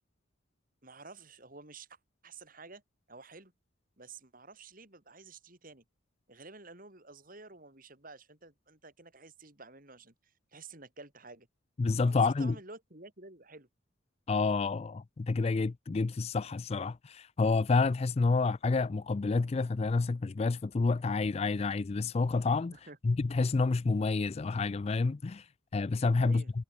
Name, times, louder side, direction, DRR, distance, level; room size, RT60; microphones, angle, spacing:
voice 1, 0.8-2.0 2.2-2.8 3.1-3.5 4.0-5.8 6.3-11.5 12.0-13.7 22.7-23.2 26.2-26.5, right 3 dB, 45° right, 5.4 m, -51 dB
voice 2, 11.8-12.6 14.3-22.8 23.0-25.5 25.7-26.4, left 3 dB, 30° left, 0.4 m, -29 dB
head